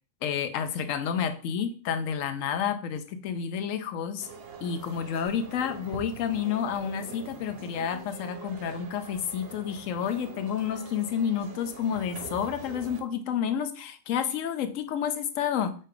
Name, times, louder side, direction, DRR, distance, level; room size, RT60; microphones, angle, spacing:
voice 1, 0.2-4.3 4.6-15.8, left 8 dB, 85° left, 9 dB, 1.0 m, -30 dB
sound 1, 4.2-13.0, right 5 dB, 60° right, 0.7 m, -44 dB
5.1 x 2.7 x 3.7 m, 0.39 s
omnidirectional pair, 1.3 m